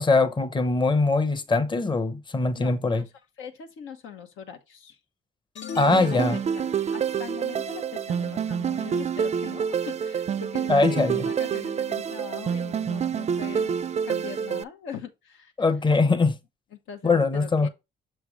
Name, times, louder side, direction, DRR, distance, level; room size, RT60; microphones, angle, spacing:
voice 1, 0.0-3.0 5.8-6.4 10.7-11.2 15.6-16.4 17.0-17.7, left 3 dB, 25° left, 0.8 m, -22 dB
voice 2, 2.6-3.0 3.4-5.0 6.1-6.6 6.9-15.5 16.7-17.7, left 8 dB, 85° left, 1.0 m, -41 dB
sound 1, 5.5-7.1, left 6 dB, 65° left, 0.7 m, -38 dB
sound 2, 5.9-14.6, right 7 dB, 35° right, 0.4 m, -28 dB
6.6 x 3.2 x 4.9 m
cardioid pair, 90°, 20 cm